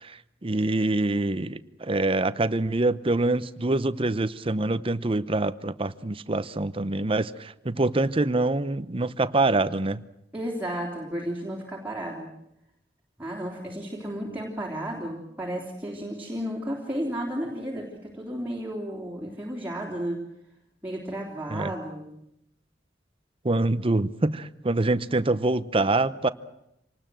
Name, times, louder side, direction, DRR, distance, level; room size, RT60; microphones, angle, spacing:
voice 1, 0.0-10.0 21.5-21.7 23.4-26.3, right 2 dB, 30° right, 14 dB, 0.8 m, -25 dB
voice 2, 10.3-12.3 13.2-20.2 20.8-22.2, equal, 10° right, -2 dB, 3.4 m, -33 dB
26.5 x 19.5 x 7.7 m, 0.80 s
head